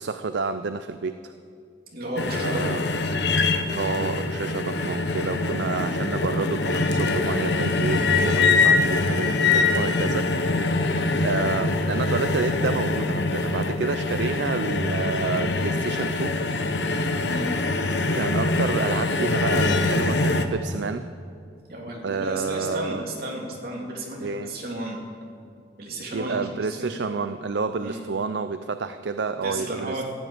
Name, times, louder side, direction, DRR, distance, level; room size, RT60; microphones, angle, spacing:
voice 1, 0.0-1.3 2.4-2.8 3.7-10.6 11.2-16.4 16.8-17.3 18.1-21.1 22.0-23.0 24.2-24.5 26.1-30.0, right 4 dB, 70° right, 10 dB, 0.5 m, -29 dB
voice 2, 1.9-3.0 3.3-3.4 8.1-8.2 17.3-17.5 21.7-25.0 25.8-27.2 27.8-28.0 29.4-30.0, right 1 dB, 55° right, -1 dB, 3.0 m, -33 dB
sound 1, 2.2-20.5, left 3 dB, 70° left, 1.0 m, -24 dB
15.0 x 9.3 x 8.8 m, 2.4 s
head